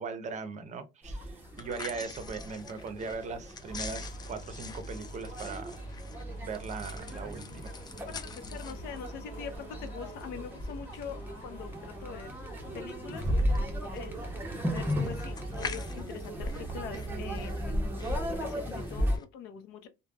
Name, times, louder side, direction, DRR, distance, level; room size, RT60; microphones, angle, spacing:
voice 1, 0.0-5.8 6.3-7.7, right 4 dB, 45° right, 0.6 m, -39 dB
sound 1, 1.0-19.2, equal, 10° right, 0.7 m, -36 dB
sound 2, 1.4-19.2, left 2 dB, 25° left, 0.4 m, -43 dB
sound 3, 3.7-16.0, right 1 dB, 40° left, 1.2 m, -44 dB
voice 2, 8.1-12.3 12.7-13.3 13.9-14.1 14.5-17.8 18.3-19.9, left 7 dB, 85° left, 0.6 m, -43 dB
3.2 x 2.1 x 2.2 m
cardioid pair, 110°, 17 cm